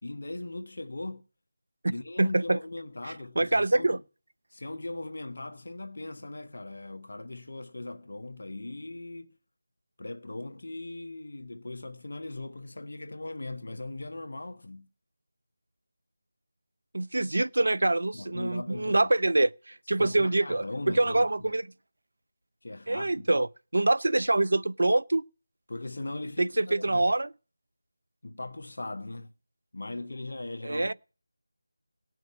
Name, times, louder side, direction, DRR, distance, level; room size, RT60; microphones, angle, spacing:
voice 1, 0.0-1.2 1.9-4.0 4.5-9.4 10.0-14.9 18.1-19.1 19.9-21.6 22.6-23.4 25.7-27.0 28.2-29.3 29.7-30.9, left 2 dB, 60° left, 1.3 m, -39 dB
voice 2, 2.2-2.6 3.4-4.0 16.9-21.7 22.9-23.5 23.7-25.2 26.4-27.3 30.6-30.9, right 2 dB, 65° right, 0.7 m, -25 dB
18.0 x 6.4 x 9.5 m
figure-of-eight pair, 170°, 0 cm